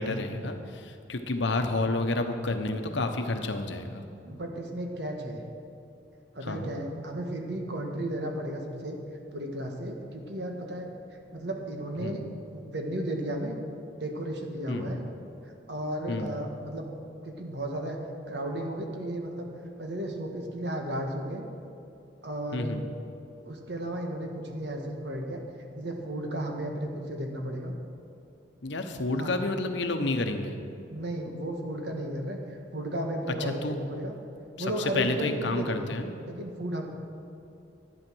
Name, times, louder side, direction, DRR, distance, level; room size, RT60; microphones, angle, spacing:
voice 1, 0.0-4.0 6.4-6.7 12.0-12.2 14.7-14.9 16.1-16.3 22.5-22.8 28.6-30.5 33.4-33.8 34.6-36.1, left 2 dB, 70° left, 6 dB, 1.0 m, -30 dB
voice 2, 4.2-5.4 6.3-9.0 9.3-10.9 11.3-12.2 12.5-13.6 14.0-15.0 15.7-16.9 17.2-18.0 18.3-19.5 19.8-21.5 22.2-22.7 23.4-25.4 25.7-27.8 29.1-29.3 30.9-34.1 34.6-35.9 36.2-36.8, right 1 dB, 60° right, 2 dB, 1.5 m, -34 dB
12.0 x 9.7 x 6.2 m, 2.7 s
head